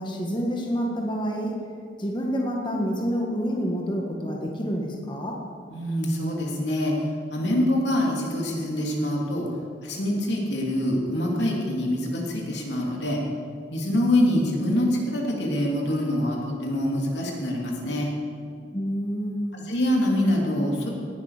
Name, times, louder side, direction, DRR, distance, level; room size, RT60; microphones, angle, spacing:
voice 1, 0.0-1.5 2.0-5.4 18.7-19.6, equal, 25° left, 0 dB, 1.7 m, -28 dB
voice 2, 5.7-6.9 7.3-9.5 9.8-13.2 13.7-18.1 19.5-20.9, left 1 dB, 85° left, -1 dB, 3.1 m, -25 dB
18.0 x 12.0 x 5.1 m, 2.2 s
head